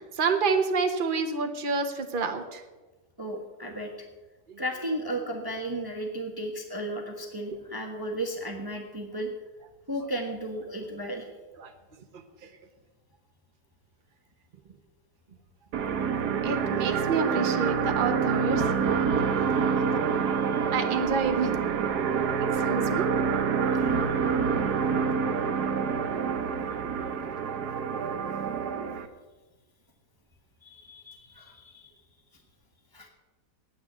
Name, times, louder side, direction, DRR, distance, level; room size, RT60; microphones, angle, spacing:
voice 1, 0.0-2.6 4.5-4.6 11.6-11.7 16.4-19.0 20.2-21.5 22.5-23.0, right 4 dB, 35° right, 5 dB, 1.2 m, -29 dB
voice 2, 3.2-4.1 4.6-9.3 9.9-11.3 19.5-20.1 20.4-20.7 23.7-23.9 30.6-31.9 32.9-33.1, right 1 dB, 15° right, 3 dB, 1.3 m, -35 dB
sound 1, 15.7-29.1, right 6 dB, 75° right, 1.5 m, -27 dB
9.5 x 9.3 x 9.3 m, 1.2 s
omnidirectional pair, 1.8 m